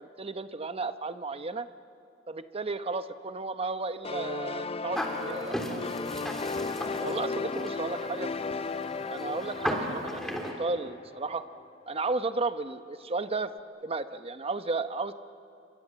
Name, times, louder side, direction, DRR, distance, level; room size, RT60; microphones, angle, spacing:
voice 1, 0.0-1.7 2.3-5.9 7.0-8.3 9.1-11.4 11.9-13.5 13.8-15.1, right 3 dB, 30° right, 10 dB, 0.9 m, -33 dB
sound 1, 4.0-11.5, left 4 dB, 30° left, 0.5 m, -35 dB
sound 2, 4.9-10.5, equal, ahead, 3.1 m, -36 dB
29.5 x 25.5 x 7.5 m, 2.6 s
head